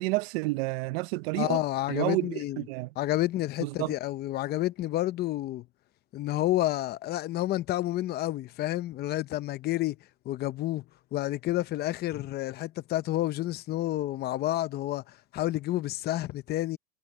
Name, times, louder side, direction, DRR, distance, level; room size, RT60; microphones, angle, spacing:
voice 1, 0.0-1.6 1.9-2.9 3.6-3.9, right 23 dB, 65° right, 0.6 m, -30 dB
voice 2, 1.3-2.6 3.0-5.6 6.1-10.0 10.3-10.8 11.1-16.8, left 15 dB, 30° left, 0.7 m, -30 dB
supercardioid pair, 145°, 32 cm